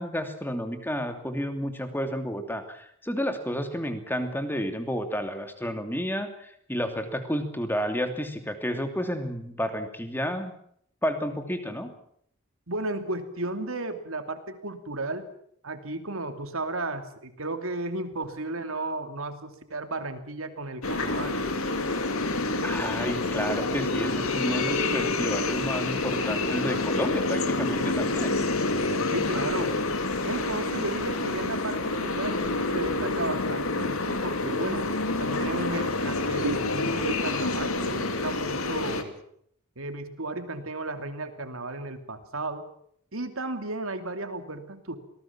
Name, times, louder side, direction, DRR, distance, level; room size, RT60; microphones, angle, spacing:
voice 1, 0.0-10.5 11.0-11.9 22.6-28.4, equal, 10° left, 7 dB, 2.7 m, -31 dB
voice 2, 12.7-15.3 15.6-21.4 29.1-29.7 30.2-34.9 35.2-39.2 39.8-42.7 43.1-45.0, right 2 dB, 80° right, 8 dB, 2.9 m, -34 dB
sound 1, 20.8-39.0, left 2 dB, 85° left, 2.6 m, -28 dB
25.5 x 19.0 x 7.3 m, 0.67 s
head